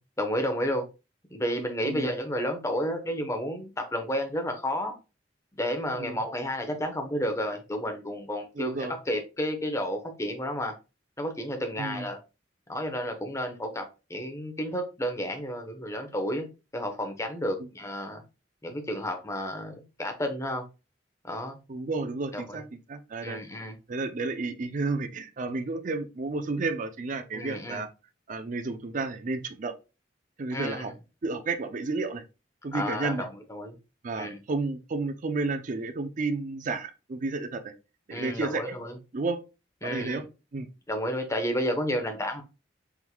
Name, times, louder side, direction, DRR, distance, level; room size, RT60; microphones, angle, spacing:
voice 1, 0.2-0.8 1.3-4.9 5.6-10.8 11.2-12.2 12.7-16.5 16.7-18.2 18.6-20.6 21.2-21.6 22.3-22.6 23.2-23.7 27.3-27.8 30.5-30.9 32.7-33.8 34.2-34.4 38.1-38.9 39.8-40.2 40.9-42.4, equal, 15° left, 6 dB, 0.8 m, -31 dB
voice 2, 8.6-8.9 11.8-12.1 21.7-22.6 22.9-23.4 23.9-27.9 28.3-29.7 30.4-30.9 31.2-32.2 32.6-33.2 34.0-37.7 38.1-38.8 39.1-39.4 39.8-40.2 40.5-40.7, right 3 dB, 45° right, 8 dB, 0.5 m, -31 dB
4.6 x 3.6 x 2.2 m, 0.29 s
head